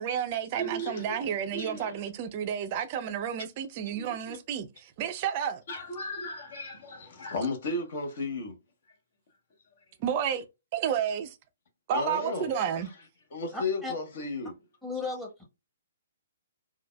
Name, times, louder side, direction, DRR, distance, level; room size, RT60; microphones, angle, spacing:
voice 1, 0.0-5.6 10.0-10.4 10.7-11.4 11.9-12.9, right 8 dB, 35° right, 0.4 m, -31 dB
voice 2, 0.6-1.9 4.0-4.4 5.7-8.6 9.8-9.9 11.9-13.0 13.3-14.6, left 2 dB, 50° left, 1.1 m, -35 dB
voice 3, 13.5-13.9 14.8-15.4, left 3 dB, 5° left, 1.0 m, -35 dB
3.9 x 2.3 x 2.3 m
figure-of-eight pair, 125°, 0 cm